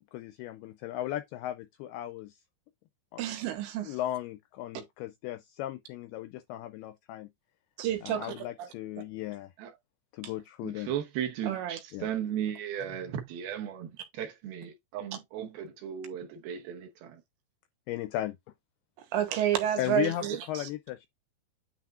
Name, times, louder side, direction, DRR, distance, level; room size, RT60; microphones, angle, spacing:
voice 1, 0.1-2.4 3.1-3.2 3.9-7.3 8.0-9.5 10.1-10.9 11.9-12.1 17.9-18.4 19.8-21.1, left 13 dB, 85° left, 2.2 m, -36 dB
voice 2, 3.2-4.0 7.8-8.7 11.4-11.8 19.1-20.7, right 11 dB, 85° right, 3.6 m, -30 dB
voice 3, 10.6-13.9 14.2-17.2, right 9 dB, 70° right, 2.7 m, -36 dB
9.3 x 4.3 x 2.5 m
omnidirectional pair, 5.1 m